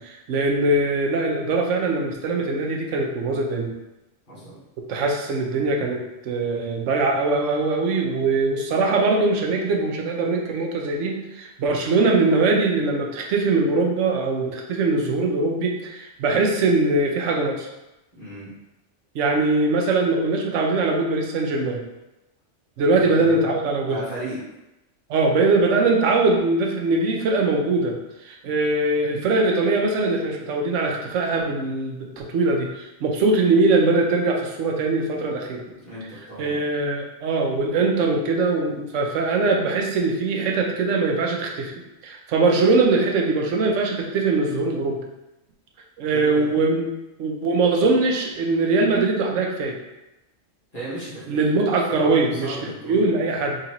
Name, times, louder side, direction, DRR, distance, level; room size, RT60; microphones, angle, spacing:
voice 1, 0.0-3.7 4.9-17.7 19.1-21.8 22.8-24.0 25.1-28.0 28.2-35.6 36.4-41.7 42.0-45.0 46.0-46.8 47.2-49.8 51.3-53.6, right 3 dB, 75° right, 1 dB, 1.0 m, -22 dB
voice 2, 4.3-4.6 18.2-18.5 22.8-23.5 23.8-24.4 35.8-36.6 46.1-46.6 50.7-51.4 51.9-53.2, right 1 dB, 40° left, -11 dB, 1.4 m, -35 dB
3.9 x 2.9 x 2.9 m, 0.96 s
omnidirectional pair, 1.3 m